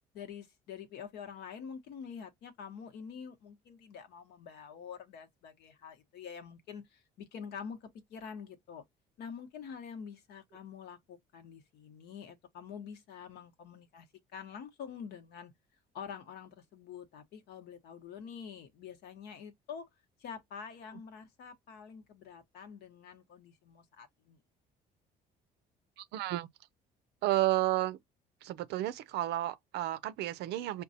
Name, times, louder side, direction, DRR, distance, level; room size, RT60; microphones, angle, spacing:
voice 1, 0.1-8.8 9.2-14.1 14.3-15.5 15.9-19.9 20.2-24.4, left 7 dB, 75° left, 1.0 m, -46 dB
voice 2, 26.0-26.5 27.2-28.0 28.4-30.8, right 15 dB, 80° right, 0.5 m, -32 dB
5.2 x 2.3 x 2.6 m
cardioid pair, 110°, 17 cm